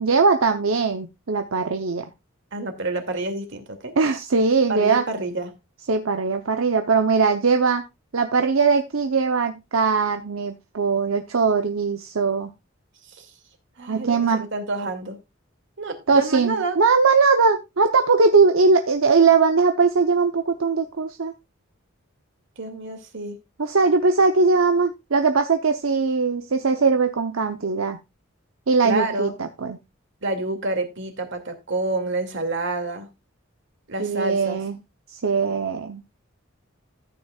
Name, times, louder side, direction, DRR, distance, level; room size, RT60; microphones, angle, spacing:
voice 1, 0.0-2.1 4.0-5.0 5.9-7.8 8.1-12.5 13.9-14.5 16.1-21.3 23.6-28.0 28.7-29.8 34.0-34.8 35.1-36.0, right 4 dB, 85° right, 6 dB, 0.8 m, -20 dB
voice 2, 2.5-3.9 4.7-5.5 13.1-13.3 13.8-15.2 15.8-16.8 22.6-23.4 28.8-29.3 30.2-33.1 33.9-34.6, right 2 dB, 65° right, 5 dB, 2.4 m, -28 dB
14.0 x 9.2 x 2.4 m, 0.23 s
head